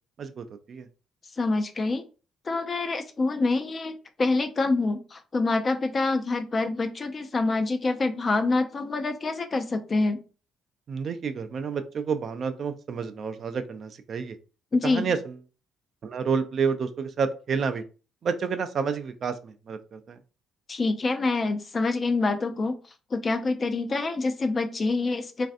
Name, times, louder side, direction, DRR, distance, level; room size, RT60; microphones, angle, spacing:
voice 1, 0.2-0.9 10.9-14.4 14.8-15.4 16.0-17.8 18.2-20.2, right 6 dB, 50° right, 9 dB, 0.3 m, -29 dB
voice 2, 1.4-2.0 2.5-10.2 14.7-15.1 20.7-22.8 23.1-25.5, left 3 dB, 30° left, 7 dB, 0.4 m, -26 dB
3.2 x 2.5 x 2.4 m, 0.35 s
cardioid pair, 110°, 0 cm